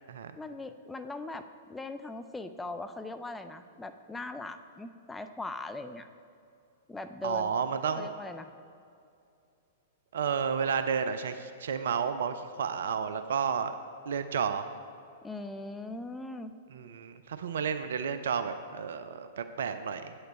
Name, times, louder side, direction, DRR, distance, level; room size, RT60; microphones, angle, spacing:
voice 1, 0.4-6.1 6.9-7.6 7.9-8.5 15.2-16.5, left 2 dB, 10° left, 8 dB, 0.5 m, -40 dB
voice 2, 7.2-8.1 10.1-13.7 14.1-14.7 16.7-20.2, right 6 dB, 65° right, 10 dB, 0.4 m, -31 dB
8.9 x 7.9 x 4.4 m, 2.5 s
figure-of-eight pair, 105°, 0 cm